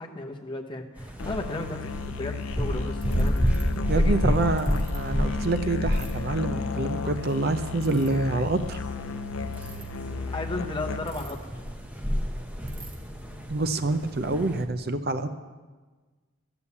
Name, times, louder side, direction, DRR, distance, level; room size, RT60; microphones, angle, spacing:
voice 1, 0.0-4.4 9.8-9.9 10.3-11.4, left 2 dB, 20° left, 2 dB, 0.9 m, -35 dB
sound 1, 1.0-14.6, equal, 5° right, 0.8 m, -30 dB
Musical instrument, 1.2-11.3, left 5 dB, 70° left, 0.5 m, -34 dB
Ratchet pawl, 3.0-3.6 4.6-5.0 5.9-6.1 7.8-8.1 9.4-9.8 11.1-11.5 11.9-12.0 12.2-12.3 12.7-12.9, right 5 dB, 85° right, 2.8 m, -47 dB
voice 2, 3.9-8.8 13.5-15.3, right 2 dB, 45° right, 10 dB, 0.5 m, -27 dB
12.5 x 7.0 x 8.3 m, 1.4 s
head